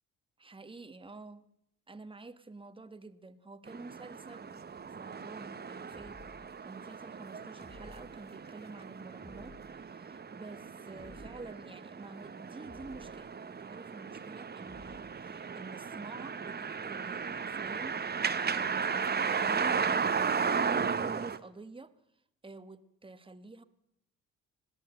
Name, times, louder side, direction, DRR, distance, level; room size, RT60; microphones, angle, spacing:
voice 1, 0.4-1.4 1.9-4.6 5.0-6.2 6.6-21.9 22.4-23.6, right 3 dB, 15° right, 1.4 m, -49 dB
sound 1, 3.7-21.4, right 6 dB, 35° right, 1.1 m, -35 dB
sound 2, 5.9-6.5 7.6-8.2 9.2-9.8 10.9-11.6 12.6-13.3 14.6-15.2, left 3 dB, 25° left, 5.3 m, -54 dB
21.5 x 17.0 x 7.8 m
cardioid pair, 90°, 30 cm